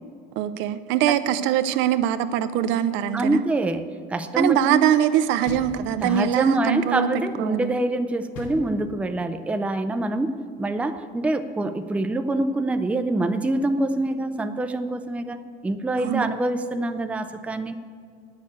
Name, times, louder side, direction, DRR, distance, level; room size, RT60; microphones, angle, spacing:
voice 1, 0.4-3.4 4.4-7.1 7.4-7.7 16.0-16.3, right 10 dB, 75° right, 11 dB, 0.6 m, -22 dB
voice 2, 3.1-4.8 6.0-17.8, right 2 dB, 5° right, 8 dB, 0.4 m, -25 dB
sound 1, 5.5-6.4 8.3-9.3, left 4 dB, 85° left, 1.7 m, -39 dB
9.5 x 6.6 x 8.5 m, 2.3 s
cardioid pair, 135°, 20 cm